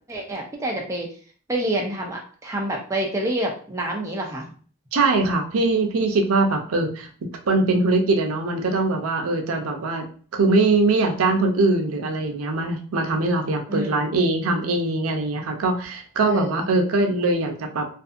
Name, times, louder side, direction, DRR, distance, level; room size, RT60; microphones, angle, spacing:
voice 1, 0.1-1.1 1.5-4.5 13.7-14.1 16.2-16.7, right 1 dB, 15° right, -1 dB, 0.4 m, -27 dB
voice 2, 4.9-7.1 7.4-17.9, right 2 dB, 80° right, 4 dB, 0.5 m, -22 dB
2.5 x 2.4 x 2.4 m, 0.43 s
head